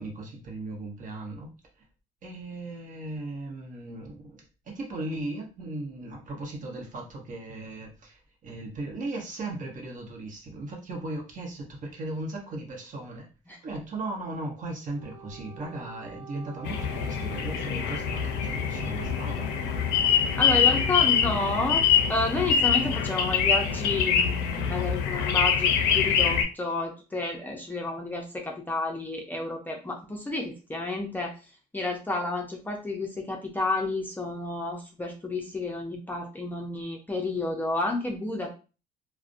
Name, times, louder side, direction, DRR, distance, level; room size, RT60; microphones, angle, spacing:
voice 1, 0.0-1.5 2.2-13.3 13.6-19.5 20.6-21.1, right 2 dB, 50° right, 0 dB, 0.9 m, -37 dB
Wind instrument woodwind instrument, 14.9-22.9, right 5 dB, 70° right, 0.6 m, -46 dB
sound 1, 16.7-26.4, left 7 dB, 85° left, 0.4 m, -24 dB
voice 2, 20.4-21.8 22.1-31.3 31.7-38.5, left 2 dB, 10° left, 0 dB, 0.4 m, -30 dB
2.4 x 2.1 x 2.5 m, 0.33 s
cardioid pair, 110°, 17 cm